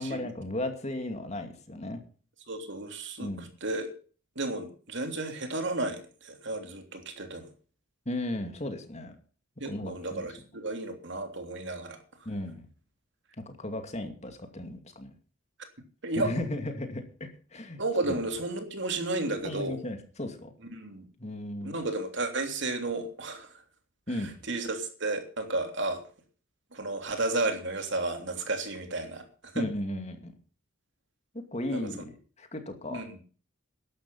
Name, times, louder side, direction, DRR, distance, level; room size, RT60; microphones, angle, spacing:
voice 1, 0.0-2.0 3.2-3.5 8.1-9.1 9.7-10.3 12.2-12.7 13.4-15.1 16.2-17.8 18.1-18.2 19.4-20.5 21.2-21.7 24.1-24.3 29.5-30.3 31.3-33.0, left 1 dB, 30° left, 6 dB, 2.5 m, -35 dB
voice 2, 2.5-3.9 4.3-7.5 9.6-12.0 16.0-16.3 17.8-19.8 20.7-21.1 21.6-23.6 24.1-26.0 26.7-29.7 31.7-31.9 32.9-33.2, right 2 dB, 60° right, 5 dB, 3.3 m, -33 dB
13.5 x 11.5 x 5.7 m, 0.40 s
head